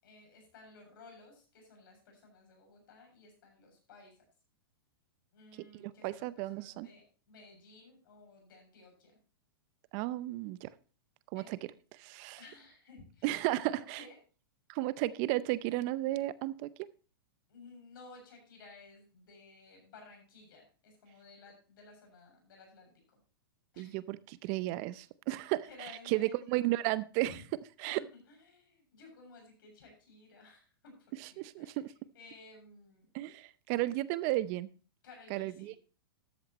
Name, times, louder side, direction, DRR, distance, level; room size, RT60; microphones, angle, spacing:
voice 1, 0.0-4.2 5.3-9.2 11.3-11.6 12.4-14.2 17.5-23.2 23.7-24.0 25.6-26.5 27.3-27.5 27.8-33.1 35.0-35.8, left 3 dB, 65° left, 3 dB, 7.1 m, -56 dB
voice 2, 5.8-6.9 9.9-10.7 11.3-11.6 11.9-12.4 13.2-14.0 14.7-16.7 23.8-27.4 27.8-28.0 31.4-31.9 33.1-34.7 35.3-35.8, right 17 dB, 40° right, 17 dB, 0.6 m, -33 dB
13.5 x 11.0 x 3.0 m, 0.36 s
hypercardioid pair, 120°, 12 cm